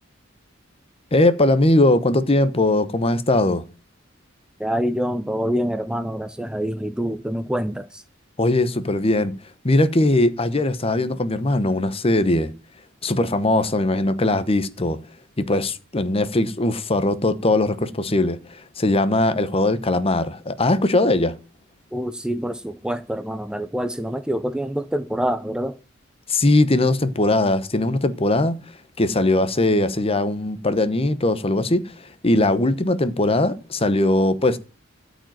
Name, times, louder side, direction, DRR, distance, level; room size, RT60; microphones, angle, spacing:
voice 1, 1.1-3.6 8.4-9.3 9.6-12.5 13.0-15.0 15.4-21.4 26.3-28.6 29.0-31.8 32.2-34.6, left 2 dB, 30° left, 1.0 m, -20 dB
voice 2, 4.6-8.0 21.9-25.8, equal, 5° right, 0.6 m, -26 dB
13.5 x 5.1 x 9.2 m
head